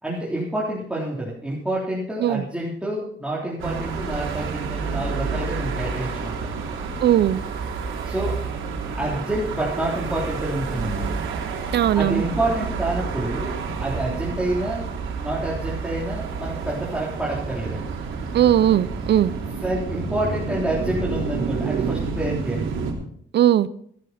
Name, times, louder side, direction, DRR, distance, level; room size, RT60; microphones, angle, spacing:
voice 1, 0.0-6.6 8.0-8.4 9.0-11.1 11.9-14.9 15.2-17.9 19.6-22.7, right 1 dB, 5° right, 3.8 m, -28 dB
sound 1, 3.6-22.9, right 5 dB, 85° right, 3.1 m, -29 dB
voice 2, 7.0-7.4 11.7-12.2 18.3-19.3 23.3-23.7, right 11 dB, 60° right, 0.7 m, -18 dB
15.0 x 12.0 x 4.3 m
cardioid pair, 90°, 20 cm